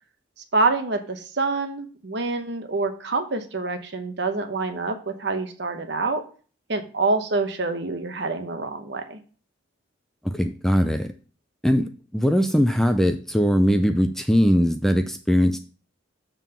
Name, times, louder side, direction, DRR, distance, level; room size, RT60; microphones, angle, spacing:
voice 1, 0.5-6.2 6.7-9.2, right 3 dB, 55° right, 7 dB, 0.9 m, -26 dB
voice 2, 10.2-11.1 11.6-15.6, equal, ahead, 7 dB, 0.4 m, -20 dB
7.1 x 3.8 x 5.6 m, 0.39 s
head